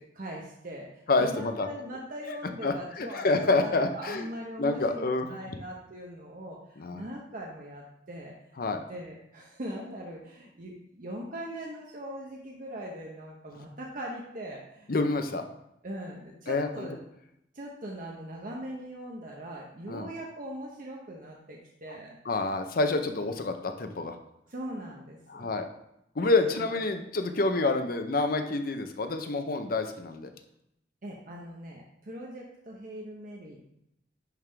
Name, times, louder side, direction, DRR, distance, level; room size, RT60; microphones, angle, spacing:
voice 1, 0.1-8.3 8.9-14.9 15.8-16.9 17.5-22.2 24.5-25.5 26.3-26.6 31.0-33.7, right 1 dB, 50° right, -2 dB, 0.8 m, -41 dB
voice 2, 1.1-1.7 2.3-2.4 2.6-4.3 4.6-5.4 6.8-7.0 8.6-8.8 14.9-15.5 16.5-16.9 19.9-20.1 22.3-24.2 25.3-25.7 26.2-30.3, left 3 dB, 55° left, 7 dB, 0.6 m, -28 dB
10.5 x 3.6 x 3.3 m, 0.80 s
head